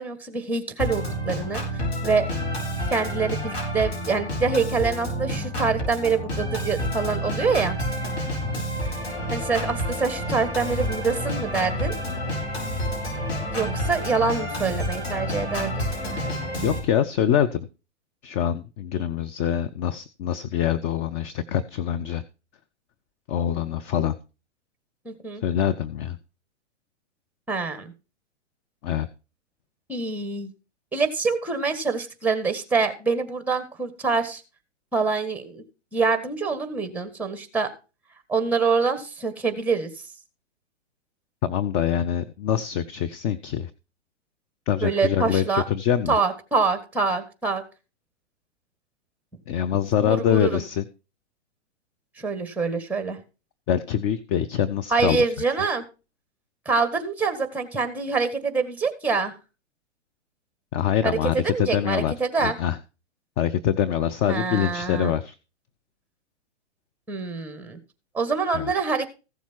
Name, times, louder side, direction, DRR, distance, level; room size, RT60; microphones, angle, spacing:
voice 1, 0.0-2.3 2.9-7.8 9.0-11.9 13.5-15.9 25.0-25.4 27.5-27.9 29.9-30.5 30.9-34.4 34.9-35.6 35.9-37.7 38.3-39.9 44.8-45.6 46.1-47.6 50.0-50.6 52.2-53.2 54.9-55.8 56.6-59.3 61.0-61.2 61.4-62.5 64.3-65.1 67.1-67.8 68.1-69.1, right 4 dB, 5° right, 10 dB, 1.7 m, -25 dB
Organ, 0.8-16.8, equal, 65° left, 6.3 m, -29 dB
voice 2, 8.3-8.6 16.6-17.7 18.2-22.2 23.3-24.2 25.4-26.2 28.8-29.1 41.4-43.7 44.7-46.1 49.5-50.8 53.7-55.2 60.7-62.1 62.4-62.8 63.4-65.3 68.5-68.7, left 9 dB, 25° left, 10 dB, 0.5 m, -24 dB
15.5 x 7.2 x 4.5 m, 0.31 s
figure-of-eight pair, 110°, 35 cm